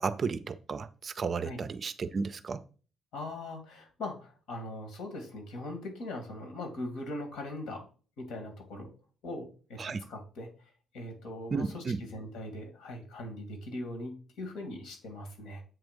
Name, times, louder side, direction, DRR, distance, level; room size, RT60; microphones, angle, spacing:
voice 1, 0.0-2.6 9.8-10.0 11.5-12.0, right 5 dB, 30° right, 0.4 m, -33 dB
voice 2, 3.1-7.8 8.2-8.9 9.2-9.8 10.1-10.5 10.9-15.6, left 1 dB, 80° left, 2.3 m, -40 dB
7.6 x 3.6 x 5.2 m
cardioid pair, 160°, 0 cm